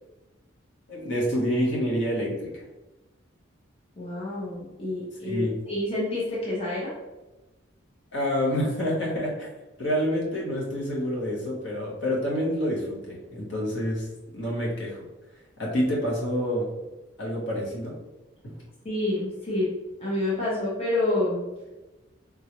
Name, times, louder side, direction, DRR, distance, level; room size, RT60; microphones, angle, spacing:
voice 1, 0.9-2.6 5.3-5.5 8.1-9.5 9.8-14.1 14.3-15.0 15.6-16.7 17.2-18.0 18.4-18.5, equal, 65° left, -4 dB, 1.0 m, -27 dB
voice 2, 4.0-6.9 18.8-19.7 20.0-21.4, left 2 dB, 30° left, -7 dB, 0.8 m, -28 dB
3.6 x 2.3 x 2.9 m, 1.1 s
head